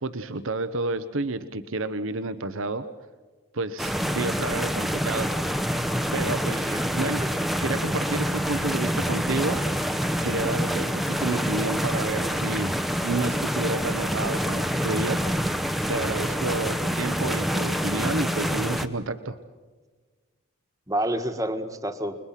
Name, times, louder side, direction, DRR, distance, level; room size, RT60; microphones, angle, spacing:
voice 1, 0.0-2.9 3.5-5.3 6.1-7.2 7.6-9.6 10.2-12.7 13.0-15.2 15.9-19.4, right 3 dB, 80° right, 10 dB, 1.0 m, -30 dB
sound 1, 3.8-18.9, equal, ahead, 0.9 m, -27 dB
voice 2, 6.4-6.9 7.2-7.3 16.6-16.8 20.9-22.2, right 1 dB, 15° right, 8 dB, 1.5 m, -29 dB
29.5 x 22.0 x 5.9 m, 1.4 s
head